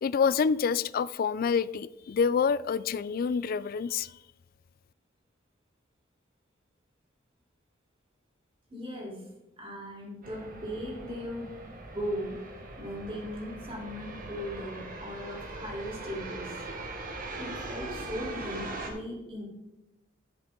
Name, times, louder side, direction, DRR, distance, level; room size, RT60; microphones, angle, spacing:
voice 1, 0.0-4.1, left 6 dB, 50° left, 17 dB, 0.3 m, -27 dB
voice 2, 8.7-9.2 9.6-11.5 11.9-12.4 12.8-16.6 17.4-19.4, equal, 30° right, -4 dB, 3.5 m, -38 dB
sound 1, 10.2-18.9, right 2 dB, 45° right, 1.4 m, -41 dB
13.5 x 6.2 x 3.7 m, 0.96 s
head